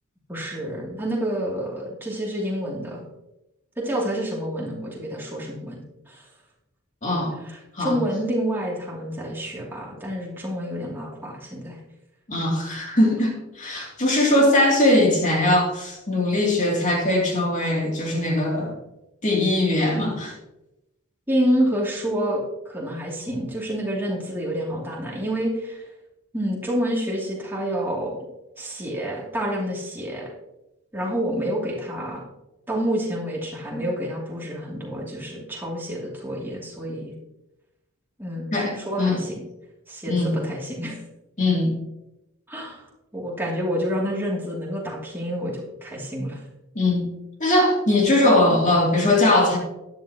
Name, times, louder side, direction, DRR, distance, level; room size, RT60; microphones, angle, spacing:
voice 1, 0.3-3.1 3.8-6.2 7.5-11.8 21.3-25.8 26.3-28.2 28.6-30.3 30.9-32.2 32.7-37.1 38.2-39.4 39.9-41.0 42.5-42.9 43.1-46.4, equal, 10° right, -4 dB, 2.8 m, -28 dB
voice 2, 7.0-7.4 7.7-8.0 12.3-18.8 19.2-20.3 38.5-39.2 40.1-40.4 41.4-41.7 46.7-47.1 47.4-49.6, left 1 dB, 35° left, -2 dB, 2.9 m, -20 dB
13.0 x 11.0 x 3.0 m, 0.93 s
head